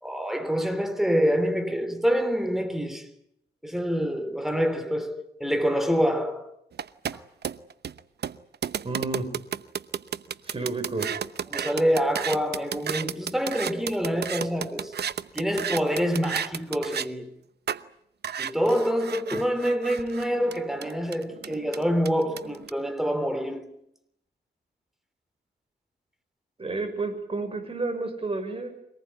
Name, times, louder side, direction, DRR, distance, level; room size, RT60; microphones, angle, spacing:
voice 1, 0.0-3.1 3.6-6.5 7.1-7.2 11.5-14.9 15.3-17.3 18.4-23.7, equal, ahead, 3.3 m, -26 dB
sound 1, 6.7-17.1 17.7-17.8 18.2-22.7, right 8 dB, 65° right, 0.9 m, -32 dB
voice 2, 8.8-9.3 10.4-11.1 26.6-28.8, right 3 dB, 30° right, 6.4 m, -31 dB
24.5 x 19.5 x 9.6 m
wide cardioid pair, 110°, 18 cm